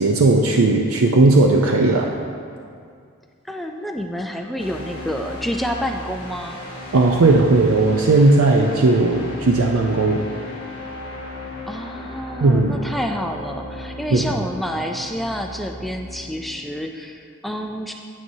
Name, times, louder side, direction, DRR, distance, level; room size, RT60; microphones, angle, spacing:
voice 1, 0.0-2.1 6.9-10.2 12.4-12.8 14.1-14.2, right 2 dB, 80° right, 2 dB, 0.5 m, -16 dB
voice 2, 3.4-6.6 11.7-17.9, equal, ahead, 2 dB, 0.3 m, -28 dB
sound 1, 4.6-16.6, left 2 dB, 25° left, 1.3 m, -36 dB
9.3 x 9.1 x 2.7 m, 2.2 s
head